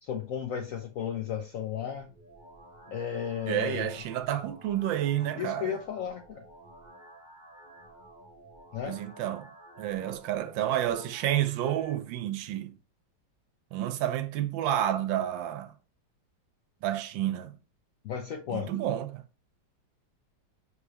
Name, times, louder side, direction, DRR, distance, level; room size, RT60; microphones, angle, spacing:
voice 1, 0.0-2.1 2.9-4.0 5.4-6.4 8.7-9.0 18.0-18.7, left 8 dB, 75° left, 0.7 m, -34 dB
sound 1, 1.9-11.9, right 1 dB, 30° right, 1.2 m, -52 dB
voice 2, 3.5-5.8 8.8-9.5 9.8-12.7 13.7-15.7 16.8-17.5 18.5-19.2, right 11 dB, 90° right, 1.4 m, -30 dB
4.8 x 3.5 x 2.8 m
omnidirectional pair, 2.0 m